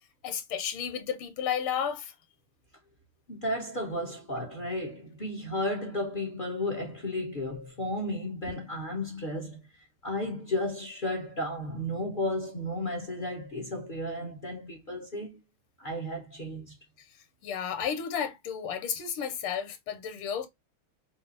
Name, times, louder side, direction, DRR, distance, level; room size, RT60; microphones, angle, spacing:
voice 1, 0.2-2.1 17.4-20.5, left 8 dB, 85° left, 1.8 m, -32 dB
voice 2, 3.3-15.4 15.8-16.8, left 1 dB, 45° left, 0.7 m, -33 dB
5.4 x 2.0 x 2.5 m
omnidirectional pair, 2.4 m